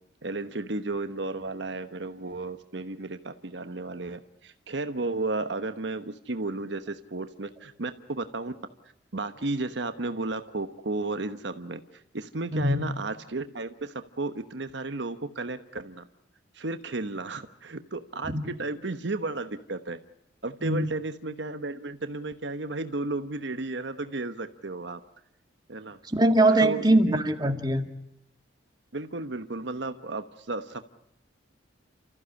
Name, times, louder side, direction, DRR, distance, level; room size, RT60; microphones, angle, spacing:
voice 1, 0.2-8.5 9.1-16.0 16.5-20.0 20.4-25.0 25.7-26.0 26.5-27.2 28.9-31.0, right 2 dB, 65° right, 9 dB, 1.1 m, -33 dB
voice 2, 12.5-12.9 18.3-18.4 20.6-20.9 26.0-27.9, right 1 dB, 20° right, 5 dB, 2.0 m, -22 dB
30.0 x 14.5 x 9.9 m, 0.79 s
head